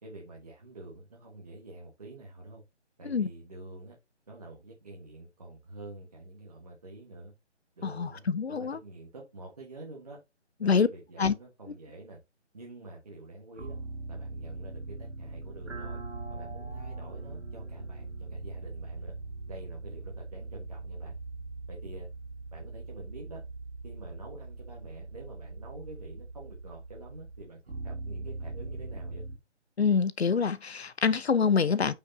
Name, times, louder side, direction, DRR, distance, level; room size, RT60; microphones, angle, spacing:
voice 1, 0.0-2.6 3.0-4.0 4.3-7.3 7.8-10.2 10.6-12.2 12.5-13.8 14.1-16.0 16.3-19.1 19.5-21.1 21.7-22.1 22.5-23.4 23.8-29.3, right 2 dB, 35° right, 1.5 m, -47 dB
voice 2, 7.8-8.8 10.6-10.9 11.2-11.3 29.8-31.9, left 5 dB, 60° left, 0.7 m, -26 dB
sound 1, 13.6-29.4, right 3 dB, 80° right, 2.4 m, -41 dB
8.0 x 5.8 x 2.8 m
figure-of-eight pair, 175°, 35 cm